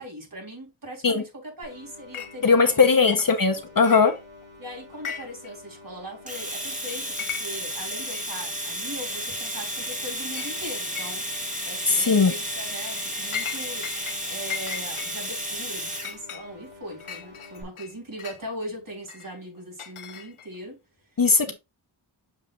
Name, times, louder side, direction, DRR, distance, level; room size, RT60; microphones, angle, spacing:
voice 1, 0.0-2.8 3.5-4.0 4.6-11.2 11.6-13.9 14.3-20.8 21.4-21.5, equal, 45° right, 3.8 m, -40 dB
sound 1, 1.6-17.6, left 3 dB, 85° right, 4.0 m, -48 dB
Chink clink, 2.1-2.3 2.6-3.5 3.8-4.5 4.9-5.5 5.8-5.9 6.5-6.6 6.9-7.7 8.1-8.2 9.1-9.2 9.6-10.0 10.3-10.5 10.9-11.4 11.8-12.1 12.6-14.2 14.5-18.4 19.1-20.6, left 8 dB, 85° left, 0.9 m, -38 dB
voice 2, 2.4-4.1 11.9-12.3 21.2-21.5, left 4 dB, 45° left, 1.0 m, -19 dB
Domestic sounds home sounds, 6.3-16.1, equal, 15° right, 2.7 m, -32 dB
7.4 x 6.3 x 2.5 m
wide cardioid pair, 70°, 48 cm